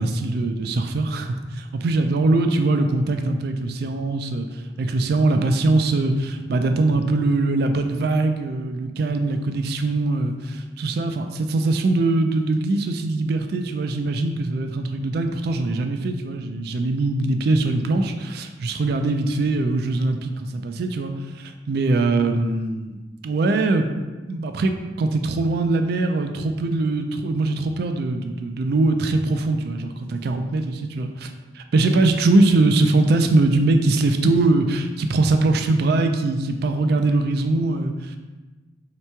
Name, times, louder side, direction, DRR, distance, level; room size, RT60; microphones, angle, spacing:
voice 1, 0.0-23.0 23.2-23.9 24.3-38.2, right 2 dB, 55° right, 6 dB, 0.3 m, -22 dB
3.4 x 2.9 x 4.5 m, 1.2 s
head